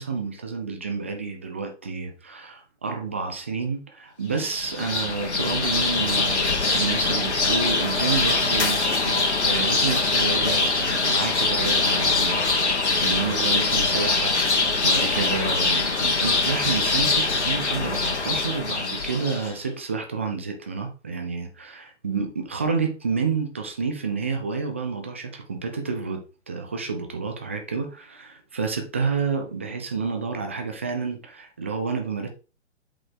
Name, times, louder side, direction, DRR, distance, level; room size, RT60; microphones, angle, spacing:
voice 1, 0.0-32.3, right 5 dB, 10° right, 0.4 m, -29 dB
sound 1, 4.4-19.5, left 3 dB, 65° left, 2.2 m, -23 dB
7.9 x 4.0 x 4.6 m
figure-of-eight pair, 125°, 37 cm